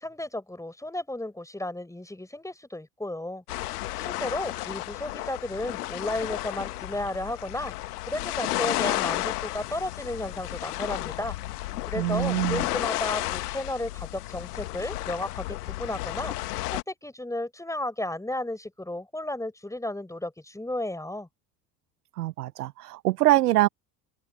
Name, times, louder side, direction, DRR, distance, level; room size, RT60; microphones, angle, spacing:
voice 1, 0.0-3.4 4.0-11.4 11.9-16.6 16.9-21.3, left 1 dB, 5° left, 5.2 m, -33 dB
sound 1, 3.5-16.8, left 17 dB, 80° left, 1.5 m, -32 dB
voice 2, 12.0-12.6 22.2-23.7, right 16 dB, 85° right, 0.9 m, -24 dB
open air
hypercardioid pair, 70°, 45 cm